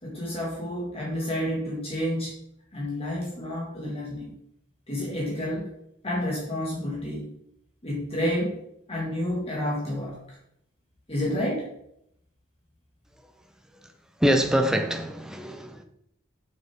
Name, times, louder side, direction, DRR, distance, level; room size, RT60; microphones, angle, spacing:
voice 1, 0.0-2.3 2.7-4.3 4.9-5.7 6.0-7.3 7.8-8.6 8.9-10.4 11.1-11.7, left 1 dB, 30° left, 1.9 m, -30 dB
voice 2, 14.2-15.8, equal, 5° right, 0.5 m, -24 dB
6.7 x 6.4 x 3.6 m
head